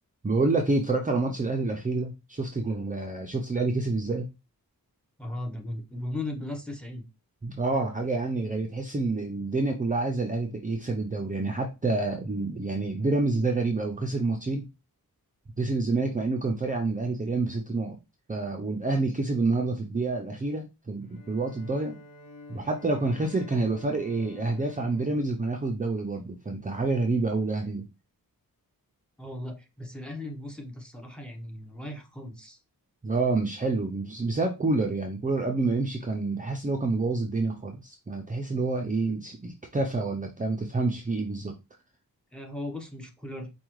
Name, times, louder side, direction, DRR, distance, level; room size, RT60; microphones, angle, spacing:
voice 1, 0.2-4.3 7.4-14.7 15.6-18.0 18.3-22.0 22.5-27.9 33.0-41.6, right 3 dB, 20° right, 2 dB, 0.5 m, -28 dB
voice 2, 5.2-7.1 29.2-32.6 42.3-43.5, left 1 dB, 5° left, 3 dB, 0.9 m, -37 dB
Bowed string instrument, 21.0-26.2, left 2 dB, 65° left, 1.1 m, -50 dB
4.7 x 2.3 x 3.0 m, 0.26 s
wide cardioid pair, 100°, 36 cm